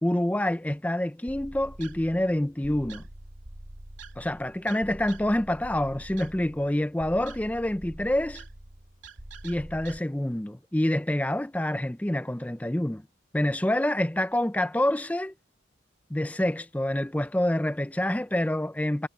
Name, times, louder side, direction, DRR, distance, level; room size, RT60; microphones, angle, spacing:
voice 1, 0.0-3.0 4.2-8.4 9.4-13.0 13.3-15.3 16.1-19.1, left 1 dB, 5° left, 0.4 m, -27 dB
sound 1, 1.3-10.0, right 1 dB, 70° right, 3.1 m, -45 dB
head